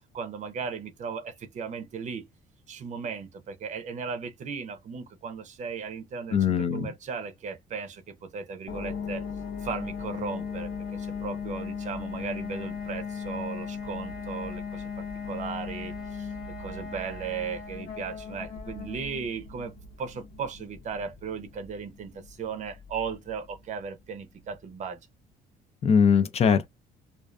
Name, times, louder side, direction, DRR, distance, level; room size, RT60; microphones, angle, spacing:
voice 1, 0.1-2.2 2.7-9.2 9.6-16.3 16.6-25.0, right 6 dB, 45° right, 0.6 m, -36 dB
voice 2, 6.3-6.9 25.8-26.7, left 7 dB, 40° left, 0.4 m, -21 dB
sound 1, 8.7-23.3, left 6 dB, 80° left, 1.0 m, -37 dB
2.3 x 2.3 x 2.4 m
cardioid pair, 110°, 17 cm